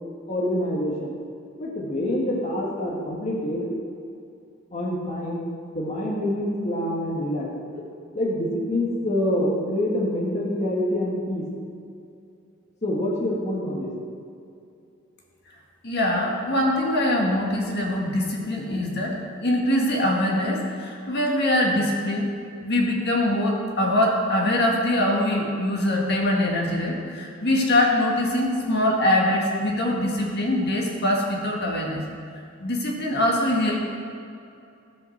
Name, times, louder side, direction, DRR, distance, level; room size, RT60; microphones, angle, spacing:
voice 1, 0.3-1.1 1.6-3.7 4.7-5.4 5.7-7.5 8.1-11.4 12.8-13.9, left 1 dB, 35° left, -3 dB, 1.7 m, -26 dB
voice 2, 15.8-22.3 22.6-32.0 32.6-33.9, left 1 dB, 55° left, -1 dB, 1.7 m, -23 dB
15.5 x 5.4 x 6.6 m, 2.5 s
head